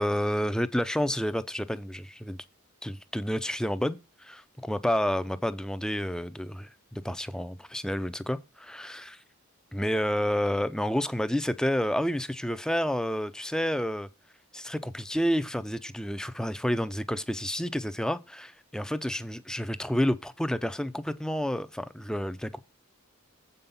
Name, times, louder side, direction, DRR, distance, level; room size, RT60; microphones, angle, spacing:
voice 1, 0.0-2.4 2.8-9.2 9.7-14.1 14.5-22.6, equal, 5° left, 0.4 m, -30 dB
7.8 x 5.4 x 5.6 m
head